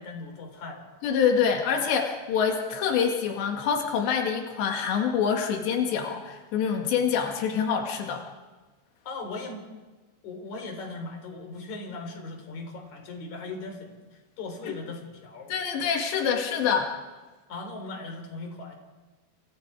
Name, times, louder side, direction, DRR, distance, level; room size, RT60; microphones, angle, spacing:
voice 1, 0.0-0.9 9.0-9.7 10.2-14.0 14.4-15.5 17.5-18.8, left 3 dB, 45° left, 4 dB, 4.9 m, -38 dB
voice 2, 1.0-8.2 14.7-14.8 15.5-16.9, left 7 dB, 90° left, 3 dB, 4.2 m, -26 dB
29.5 x 28.0 x 4.9 m, 1.3 s
omnidirectional pair, 4.9 m